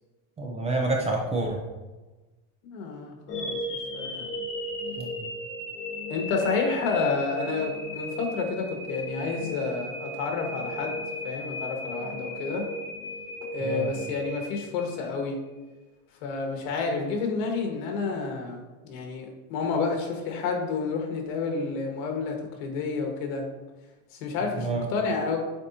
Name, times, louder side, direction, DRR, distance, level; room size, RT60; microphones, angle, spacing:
voice 1, 0.4-1.6 5.0-5.3 13.6-13.9 24.6-24.9, right 2 dB, 15° right, 0 dB, 0.5 m, -28 dB
voice 2, 2.6-3.6 3.9-4.3 6.1-10.9 11.2-12.7 13.5-15.4 16.2-23.5 24.1-25.4, left 4 dB, 70° left, 2 dB, 1.6 m, -30 dB
sound 1, 3.3-15.4, equal, 30° left, 1.6 m, -36 dB
8.1 x 4.2 x 2.8 m, 1.2 s
supercardioid pair, 150°, 43 cm